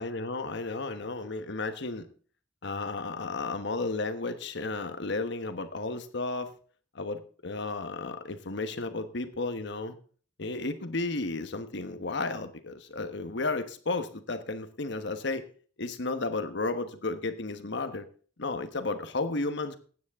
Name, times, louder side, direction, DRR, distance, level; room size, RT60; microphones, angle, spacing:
voice 1, 0.0-2.1 2.6-6.5 6.9-9.9 10.4-15.4 15.8-18.1 18.4-19.8, left 3 dB, 65° left, 8 dB, 1.2 m, -33 dB
16.0 x 9.5 x 3.6 m, 0.43 s
head